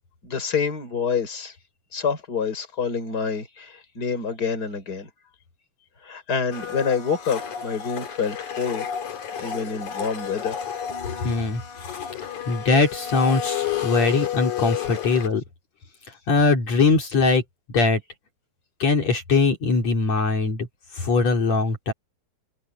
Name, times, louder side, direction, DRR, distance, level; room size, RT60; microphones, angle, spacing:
voice 1, 0.2-1.5 1.9-5.1 6.0-8.9 9.4-10.6, left 6 dB, 30° left, 4.9 m, -27 dB
Domestic sounds home sounds, 6.5-15.3, left 9 dB, 80° left, 4.3 m, -31 dB
voice 2, 11.2-11.6 11.9-12.1 12.5-15.4 16.3-17.4 17.7-18.0 18.8-20.7 20.9-21.9, left 3 dB, 60° left, 4.7 m, -21 dB
omnidirectional pair, 3.4 m